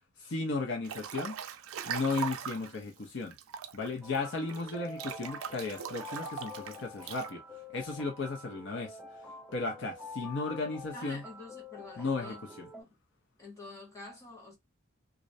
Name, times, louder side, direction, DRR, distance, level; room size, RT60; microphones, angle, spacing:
voice 1, 0.2-1.4 1.9-3.3 3.7-7.4 7.7-9.0 9.5-11.2 12.0-12.7, left 3 dB, 60° left, 0.5 m, -35 dB
Breathing / Bathtub (filling or washing) / Splash splatter, 0.8-2.8 3.3-7.3, right 8 dB, 85° right, 0.3 m, -40 dB
sound 1, 4.0-12.8, left 2 dB, 5° right, 0.4 m, -47 dB
voice 2, 10.9-12.4 12.7-13.0 13.4-14.6, left 3 dB, 15° left, 1.0 m, -47 dB
2.4 x 2.0 x 2.5 m
head